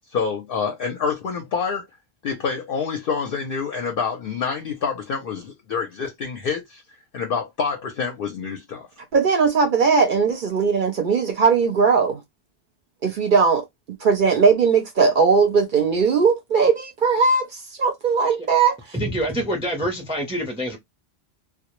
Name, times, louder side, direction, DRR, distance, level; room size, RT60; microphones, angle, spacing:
voice 1, 0.1-1.9 2.2-6.8 7.1-8.9, left 5 dB, 60° left, 0.7 m, -27 dB
voice 2, 9.1-12.2 13.0-18.7, right 5 dB, 55° right, 0.6 m, -19 dB
voice 3, 18.9-20.8, equal, 5° right, 0.4 m, -26 dB
2.1 x 2.0 x 2.9 m
omnidirectional pair, 1.2 m